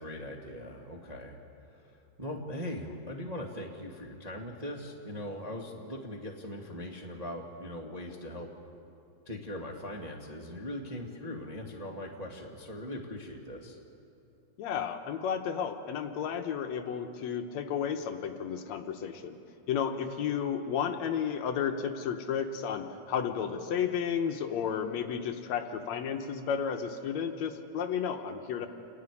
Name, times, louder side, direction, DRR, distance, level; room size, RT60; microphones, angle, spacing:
voice 1, 0.0-1.4 1.7-8.5 9.2-13.8, left 1 dB, 20° right, 0 dB, 1.2 m, -40 dB
voice 2, 14.6-19.4 19.7-28.7, left 7 dB, 70° left, 6 dB, 2.2 m, -32 dB
29.0 x 11.0 x 9.7 m, 2.8 s
omnidirectional pair, 3.4 m